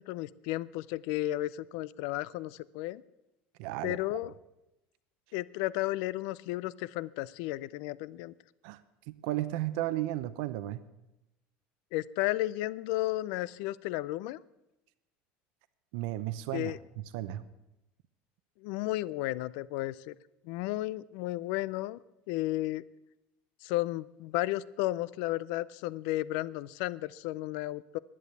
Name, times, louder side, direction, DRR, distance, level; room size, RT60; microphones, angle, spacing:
voice 1, 0.0-3.0 3.8-4.3 5.3-8.3 11.9-14.4 16.5-16.8 18.6-20.1 20.4-22.0 22.3-22.8 23.6-28.0, left 17 dB, 75° left, 20 dB, 0.5 m, -33 dB
voice 2, 3.6-4.0 8.6-8.8 9.1-10.8 15.9-16.7 17.1-17.4, right 15 dB, 80° right, 13 dB, 0.7 m, -34 dB
11.0 x 10.0 x 8.2 m, 0.95 s
cardioid pair, 160°, 4 cm